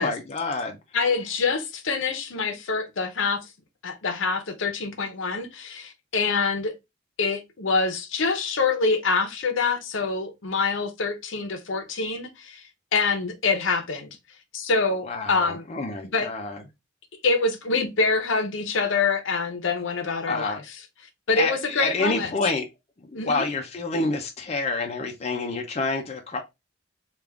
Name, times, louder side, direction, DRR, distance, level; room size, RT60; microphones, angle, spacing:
voice 1, 0.0-0.8 15.0-16.6 20.3-20.6 21.4-22.7 23.0-26.4, left 3 dB, 35° left, 0.5 m, -28 dB
voice 2, 0.9-3.5 3.8-6.7 7.2-12.6 12.9-14.2 14.5-15.7 16.1-16.3 17.2-20.6 21.3-22.3 23.1-23.4, left 4 dB, 70° left, 0.8 m, -25 dB
3.5 x 2.4 x 3.5 m
head